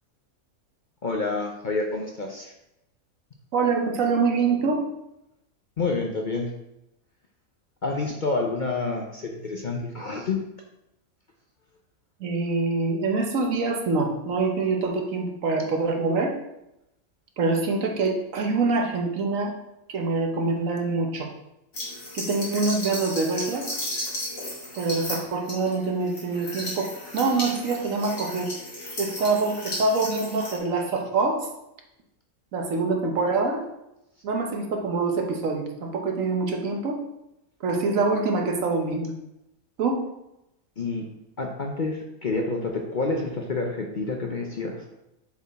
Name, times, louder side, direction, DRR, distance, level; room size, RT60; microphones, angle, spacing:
voice 1, 1.0-2.5 5.8-6.5 7.8-10.4 40.8-41.1 41.4-44.8, left 3 dB, 45° left, 1 dB, 0.7 m, -28 dB
voice 2, 3.5-4.9 12.2-16.3 17.4-19.5 19.9-21.3 22.1-23.7 24.7-28.5 29.0-31.5 32.5-33.6 34.2-37.0 37.6-39.1 39.8-40.0, right 3 dB, 70° right, 3 dB, 1.3 m, -25 dB
sound 1, 21.7-30.6, left 1 dB, 65° left, 2.4 m, -34 dB
7.1 x 4.2 x 4.2 m, 0.87 s
omnidirectional pair, 1.5 m